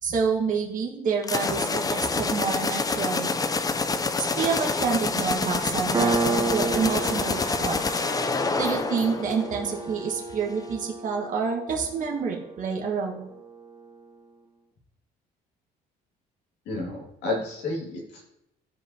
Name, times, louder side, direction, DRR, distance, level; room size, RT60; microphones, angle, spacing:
voice 1, 0.0-3.3 4.3-8.0 8.6-13.3, right 5 dB, 50° right, 0 dB, 1.6 m, -28 dB
sound 1, 1.2-9.9, left 4 dB, 20° left, 0.6 m, -27 dB
Piano, 5.9-13.1, right 4 dB, 20° right, 0.7 m, -31 dB
voice 2, 16.6-18.2, left 2 dB, 85° left, -2 dB, 2.6 m, -31 dB
15.0 x 5.1 x 2.9 m, 0.83 s
cardioid pair, 110°, 17 cm